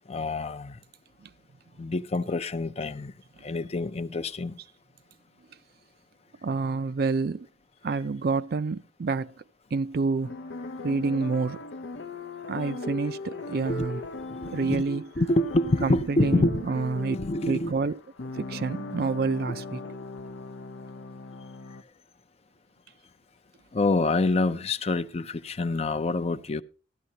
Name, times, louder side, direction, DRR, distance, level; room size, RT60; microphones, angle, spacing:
voice 1, 0.1-0.8 1.8-3.1 3.4-4.6 13.7-13.9 14.2-16.6 17.1-17.7 23.7-26.6, left 2 dB, 35° left, 0.5 m, -27 dB
voice 2, 6.4-7.5 7.8-9.3 9.7-10.4 10.8-11.6 12.5-14.0 14.5-15.3 15.8-17.2 17.5-18.0 18.4-19.8, right 4 dB, 55° right, 0.4 m, -28 dB
sound 1, 10.2-21.8, left 2 dB, 80° left, 0.6 m, -38 dB
14.0 x 12.5 x 2.8 m
head